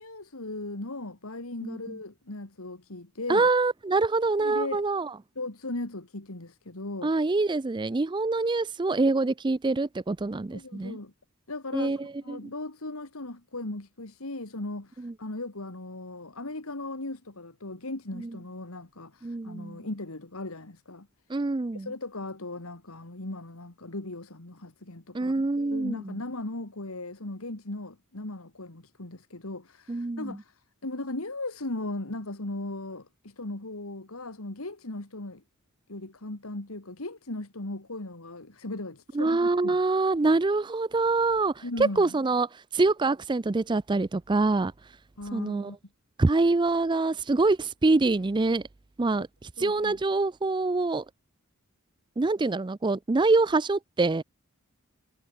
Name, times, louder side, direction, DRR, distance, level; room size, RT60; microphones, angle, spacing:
voice 1, 0.0-3.5 4.4-4.8 5.4-7.1 10.5-11.1 11.5-11.9 12.2-21.1 21.7-35.4 35.9-39.8 41.6-42.2 45.2-45.8 49.6-50.0, left 2 dB, 75° left, 2.3 m, -37 dB
voice 2, 1.6-2.0 3.3-5.2 7.0-11.0 11.7-12.4 15.0-15.1 18.1-18.3 19.2-19.8 21.3-21.9 25.1-26.2 29.9-30.4 39.1-44.7 45.3-45.7 46.2-48.6 49.0-51.0 52.2-54.2, right 3 dB, 20° right, 0.4 m, -25 dB
head